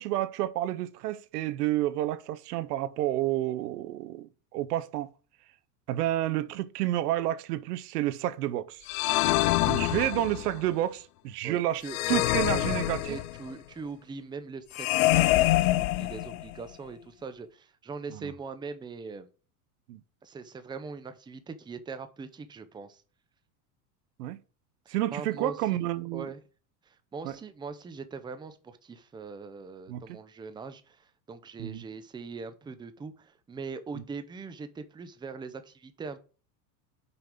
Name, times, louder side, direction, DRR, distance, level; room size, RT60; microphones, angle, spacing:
voice 1, 0.0-5.1 5.9-8.8 9.7-13.2 18.1-18.3 19.9-20.0 24.2-24.4 24.9-26.3 27.2-27.4 29.9-30.0 31.6-31.8 34.0-34.1, right 14 dB, 90° right, 0.7 m, -30 dB
sound 1, 8.9-10.6 11.9-13.5 14.7-16.6, left 17 dB, 70° left, 0.6 m, -25 dB
voice 2, 10.0-10.8 11.4-12.2 13.1-19.3 20.2-23.0 24.9-25.8 26.1-26.4 26.9-36.2, right 4 dB, 10° right, 0.5 m, -41 dB
5.8 x 5.2 x 3.7 m
supercardioid pair, 115°, 46 cm